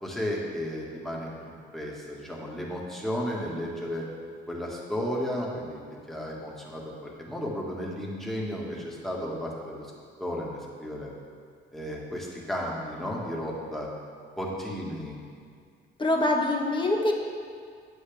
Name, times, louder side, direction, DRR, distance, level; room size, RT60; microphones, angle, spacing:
voice 1, 0.0-4.1 4.5-5.8 6.1-9.9 10.2-11.1 11.7-13.9 14.4-15.2, equal, ahead, -4 dB, 1.8 m, -33 dB
voice 2, 16.0-17.1, left 2 dB, 25° left, 0 dB, 1.3 m, -24 dB
9.2 x 8.3 x 3.5 m, 2.1 s
cardioid pair, 90°, 20 cm